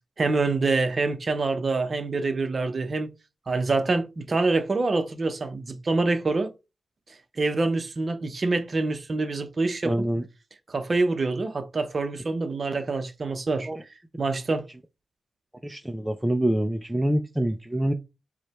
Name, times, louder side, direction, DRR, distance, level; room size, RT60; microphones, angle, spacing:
voice 1, 0.2-3.1 3.5-6.5 7.4-10.1 10.7-13.7 14.2-14.7, right 3 dB, 40° right, 0.7 m, -26 dB
voice 2, 9.8-10.2 13.7-13.8 15.6-17.9, right 1 dB, 10° right, 0.4 m, -26 dB
4.8 x 2.1 x 4.2 m
wide cardioid pair, 125°, 0 cm